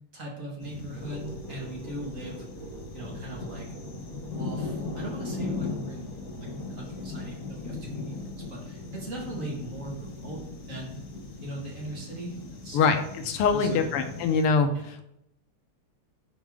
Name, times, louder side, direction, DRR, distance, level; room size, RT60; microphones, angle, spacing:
voice 1, 0.1-2.5 2.9-3.7 4.4-6.1 6.4-11.0 11.4-13.0 13.5-13.9 14.7-14.9, right 1 dB, 40° right, -2 dB, 2.1 m, -40 dB
sound 1, 0.6-14.4, left 3 dB, 50° left, 1.0 m, -38 dB
sound 2, 0.9-11.3, right 2 dB, 85° right, 4.4 m, -47 dB
voice 2, 12.7-15.0, left 5 dB, 85° left, 7 dB, 1.7 m, -24 dB
10.0 x 4.3 x 3.6 m, 0.79 s
omnidirectional pair, 2.4 m